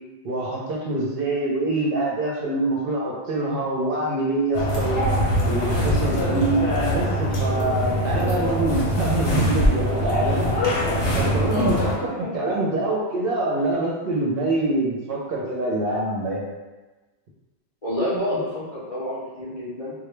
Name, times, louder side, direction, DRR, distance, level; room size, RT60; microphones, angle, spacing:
voice 1, 0.2-5.0 5.4-6.6 6.9-10.4 11.1-16.5, right 2 dB, 65° right, -4 dB, 0.7 m, -25 dB
sound 1, 4.5-12.0, equal, 80° left, 0.9 m, -23 dB
voice 2, 11.5-11.9 12.4-12.6 17.8-19.9, left 1 dB, 45° left, -10 dB, 0.5 m, -28 dB
2.1 x 2.1 x 3.0 m, 1.2 s
omnidirectional pair, 1.1 m